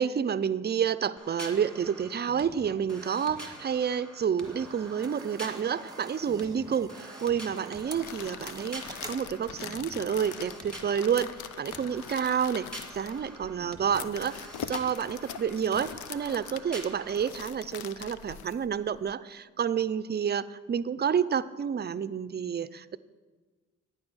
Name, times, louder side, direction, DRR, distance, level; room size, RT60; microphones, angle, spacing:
voice 1, 0.0-6.9 7.2-12.7 12.9-14.4 14.7-23.0, right 7 dB, 35° right, 15 dB, 0.5 m, -29 dB
sound 1, 1.2-17.3, right 1 dB, 5° left, 2.0 m, -46 dB
sound 2, 4.4-9.9, right 2 dB, 15° right, 1.1 m, -48 dB
sound 3, 7.9-19.1, left 10 dB, 85° left, 0.6 m, -43 dB
12.0 x 9.5 x 6.3 m, 1.4 s
cardioid pair, 100°, 29 cm